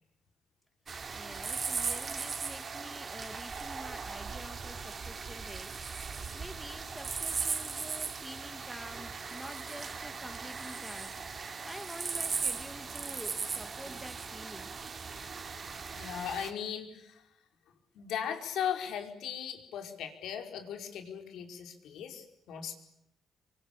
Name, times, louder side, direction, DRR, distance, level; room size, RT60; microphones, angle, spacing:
sound 1, 0.9-16.5, right 5 dB, 40° right, 3.1 m, -38 dB
voice 1, 1.1-6.1 6.3-11.2 11.6-14.7, equal, ahead, 10 dB, 1.9 m, -48 dB
voice 2, 15.9-17.3 17.9-22.7, left 8 dB, 80° left, 5 dB, 5.0 m, -38 dB
27.0 x 24.5 x 8.7 m, 0.82 s
cardioid pair, 110°, 0 cm